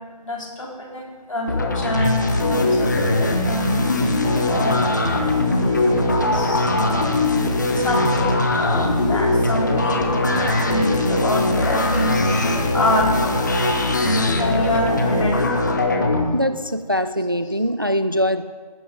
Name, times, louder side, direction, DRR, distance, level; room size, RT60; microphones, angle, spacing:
voice 1, 0.2-3.1 3.4-4.2 4.4-4.9 6.3-6.7 7.7-13.3 14.0-15.4, left 1 dB, 50° left, -2 dB, 3.5 m, -26 dB
sound 1, 1.5-16.2, left 2 dB, 25° left, 1.0 m, -20 dB
sound 2, 3.4-13.8, right 2 dB, 10° right, 0.8 m, -35 dB
voice 2, 16.3-18.4, equal, 30° right, 11 dB, 0.4 m, -22 dB
20.0 x 10.5 x 3.9 m, 1.5 s
figure-of-eight pair, 165°, 21 cm